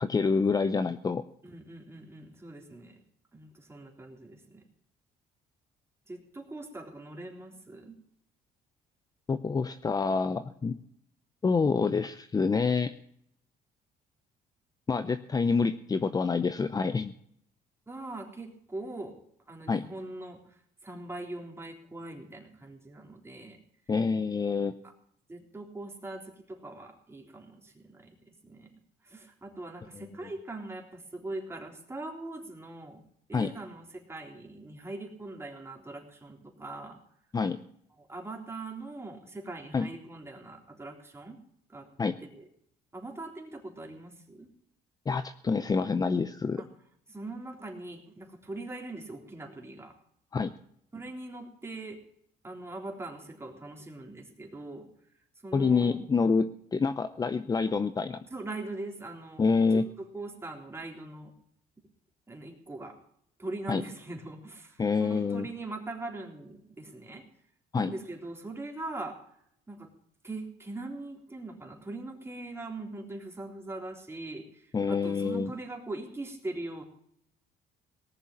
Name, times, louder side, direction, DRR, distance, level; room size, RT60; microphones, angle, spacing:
voice 1, 0.0-1.2 9.3-10.8 11.4-12.9 14.9-17.1 19.7-19.8 23.9-24.8 33.3-33.5 37.3-37.6 39.7-39.9 42.0-42.2 45.1-46.6 50.3-50.5 55.5-58.2 59.4-59.9 63.7-63.8 64.8-65.5 67.7-67.9 74.7-75.5, left 4 dB, 20° left, 12 dB, 0.7 m, -27 dB
voice 2, 1.4-3.0 3.3-4.6 6.1-8.0 17.9-19.2 19.5-23.6 25.3-28.7 29.0-33.0 33.3-37.0 37.9-41.4 41.7-41.9 42.3-42.5 42.9-44.5 46.6-46.7 47.1-49.9 50.9-52.0 52.4-54.9 55.4-56.0 58.3-61.3 62.3-63.0 63.4-67.2 67.7-69.2 69.7-69.9 70.2-76.8, right 2 dB, 15° right, 1 dB, 3.7 m, -41 dB
18.5 x 6.9 x 8.6 m, 0.69 s
cardioid pair, 110°, 17 cm